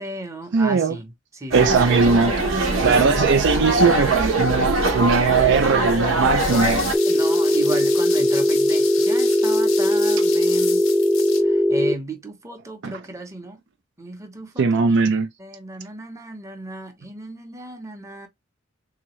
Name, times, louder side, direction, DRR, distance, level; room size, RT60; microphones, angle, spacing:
voice 1, 0.0-1.9 2.8-3.3 7.1-10.9 11.3-13.6 14.0-15.1 15.4-18.3, right 2 dB, 15° right, 0.8 m, -35 dB
voice 2, 0.5-0.9 1.5-2.3 2.8-6.8 12.8-12.9 14.6-15.3, right 4 dB, 60° right, 0.4 m, -19 dB
sound 1, 1.5-6.9, right 2 dB, 90° right, 1.0 m, -22 dB
sound 2, 6.4-11.4, left 9 dB, 90° left, 0.7 m, -33 dB
Telephone, 6.9-11.9, equal, 5° left, 0.4 m, -19 dB
3.6 x 2.9 x 3.0 m
head